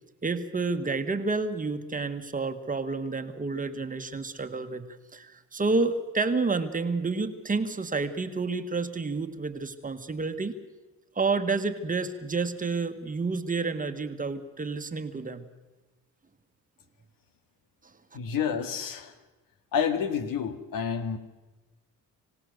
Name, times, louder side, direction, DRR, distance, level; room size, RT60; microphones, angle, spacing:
voice 1, 0.2-4.9 5.1-10.6 11.1-15.4, right 4 dB, 25° right, 7 dB, 1.4 m, -29 dB
voice 2, 18.1-19.1 19.7-21.2, left 7 dB, 75° left, 9 dB, 2.0 m, -29 dB
26.0 x 17.0 x 6.5 m, 1.2 s
cardioid pair, 105°, 34 cm